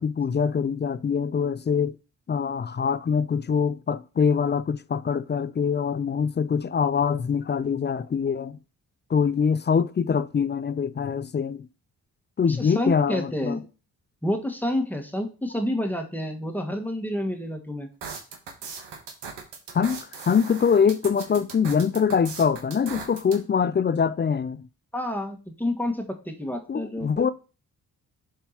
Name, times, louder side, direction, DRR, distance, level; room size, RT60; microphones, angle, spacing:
voice 1, 0.0-2.0 2.3-8.6 9.1-11.7 12.4-13.6 19.7-24.7 26.7-27.3, left 6 dB, 30° left, 0.4 m, -24 dB
voice 2, 12.4-13.6 14.2-17.9 24.9-27.2, left 1 dB, 5° left, 1.5 m, -29 dB
sound 1, 18.0-23.4, right 5 dB, 85° right, 1.2 m, -39 dB
11.0 x 3.7 x 2.9 m
supercardioid pair, 45°, 41 cm